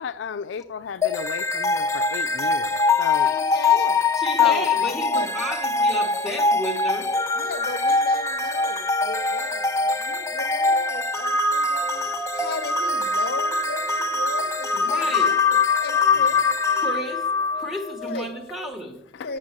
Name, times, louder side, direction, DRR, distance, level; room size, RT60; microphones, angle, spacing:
voice 1, 0.0-3.3 4.4-4.7 19.2-19.3, left 6 dB, 80° left, 0.4 m, -33 dB
sound 1, 1.0-18.2, left 4 dB, 15° left, 0.6 m, -23 dB
voice 2, 3.2-4.0 4.4-5.3 7.3-16.4 18.1-18.3 19.2-19.4, left 3 dB, 60° left, 0.9 m, -36 dB
voice 3, 4.1-7.1 14.7-15.4 16.1-16.2 16.8-17.3 17.5-18.9, equal, ahead, 1.4 m, -32 dB
8.8 x 6.2 x 7.3 m
head